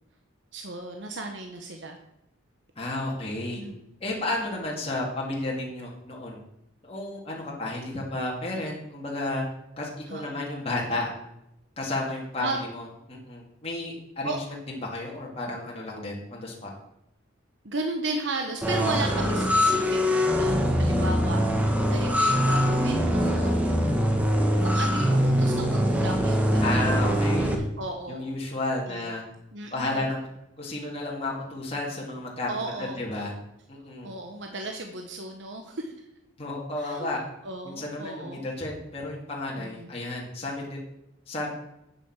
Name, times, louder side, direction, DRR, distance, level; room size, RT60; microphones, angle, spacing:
voice 1, 0.5-2.0 3.6-3.8 10.1-10.2 12.4-12.6 14.2-14.4 17.6-23.5 24.6-27.1 27.8-28.3 28.9-29.1 29.5-30.1 32.5-33.3 34.0-35.9 36.8-37.1 37.4-38.5 39.6-39.9, right 2 dB, 65° right, 4 dB, 1.1 m, -35 dB
voice 2, 2.8-3.6 4.0-6.4 6.8-9.5 9.8-11.1 11.8-16.7 26.6-27.6 28.1-29.2 29.7-30.3 30.6-33.3 33.7-34.1 36.4-37.2 37.6-40.8 41.3-41.5, left 2 dB, 30° left, -3 dB, 2.1 m, -32 dB
sound 1, 18.6-27.5, equal, 10° right, 1.2 m, -23 dB
8.6 x 7.2 x 7.2 m, 0.84 s
head